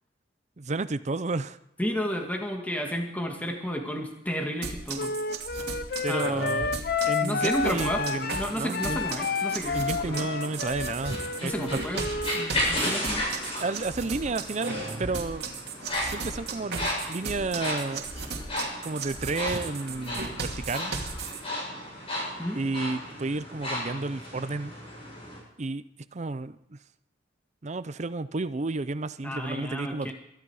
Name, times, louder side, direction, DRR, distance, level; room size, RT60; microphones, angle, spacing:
voice 1, 0.6-1.6 6.0-9.0 9.7-11.8 13.6-15.5 16.0-18.1 18.8-20.9 22.5-24.7 25.6-25.8 26.1-26.8 27.6-30.1, right 3 dB, 40° right, 14 dB, 0.6 m, -32 dB
voice 2, 1.8-5.1 6.1-6.5 7.2-8.0 8.3-10.3 11.4-12.0 12.3-13.3 22.4-22.6 29.2-30.1, equal, 10° left, 2 dB, 2.0 m, -32 dB
sound 1, 4.6-21.4, right 4 dB, 60° right, 2.7 m, -36 dB
Wind instrument woodwind instrument, 5.0-12.5, left 5 dB, 55° left, 0.7 m, -31 dB
sound 2, 7.7-25.4, left 1 dB, 30° left, 7.6 m, -35 dB
23.0 x 13.0 x 4.9 m, 0.84 s
head